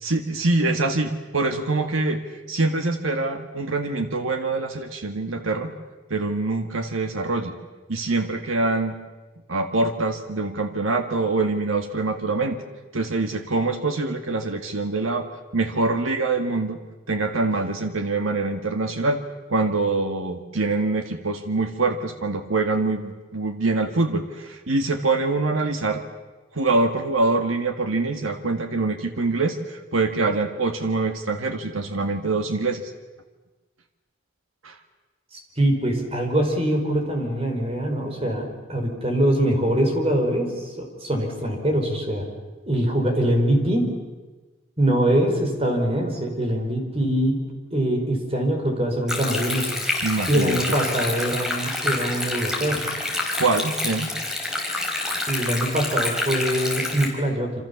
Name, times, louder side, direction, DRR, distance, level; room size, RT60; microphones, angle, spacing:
voice 1, 0.0-2.2 2.5-5.7 6.1-7.5 7.9-9.0 9.5-12.6 12.9-16.8 17.1-19.2 19.5-26.0 26.5-32.9 34.6-34.7 50.0-50.6 53.4-54.1, right 3 dB, 90° right, 6 dB, 1.9 m, -24 dB
voice 2, 35.3-42.3 42.7-43.9 44.8-47.4 47.7-49.7 50.3-52.9 55.3-57.5, right 1 dB, 30° right, 3 dB, 5.1 m, -23 dB
Stream, 49.1-57.1, left 2 dB, 5° right, 4.2 m, -27 dB
27.5 x 27.0 x 7.2 m, 1.2 s
head